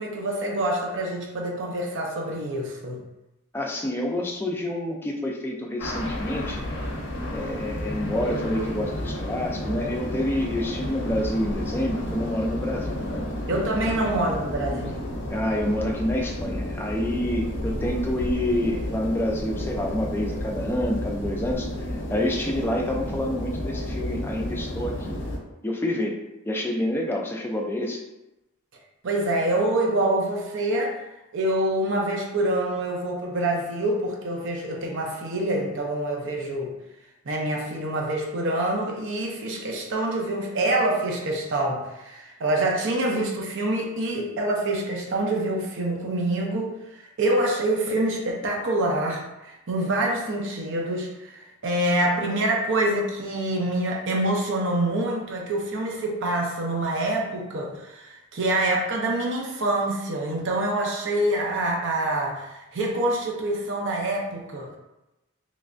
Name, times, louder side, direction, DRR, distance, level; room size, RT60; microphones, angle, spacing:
voice 1, 0.0-3.0 13.5-15.0 29.0-31.0 31.3-36.7 37.3-64.8, right 1 dB, 55° right, 0 dB, 0.6 m, -26 dB
voice 2, 3.5-6.6 7.3-13.2 15.3-21.9 22.1-25.2 25.6-28.0, left 1 dB, 10° left, -1 dB, 0.4 m, -28 dB
sound 1, 5.8-25.4, left 1 dB, 55° left, 0.6 m, -31 dB
3.3 x 3.1 x 2.5 m, 0.96 s
head